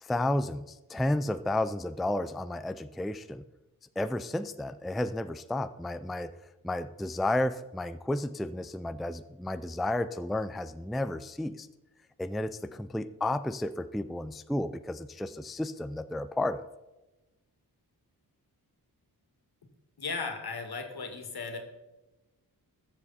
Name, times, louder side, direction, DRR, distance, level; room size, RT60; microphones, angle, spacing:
voice 1, 0.0-3.4 4.0-6.3 6.6-11.7 12.2-16.7, left 1 dB, ahead, 12 dB, 0.4 m, -32 dB
voice 2, 20.0-21.6, left 4 dB, 75° left, 5 dB, 2.2 m, -36 dB
20.0 x 7.3 x 4.3 m, 1.1 s
wide cardioid pair, 115°, 38 cm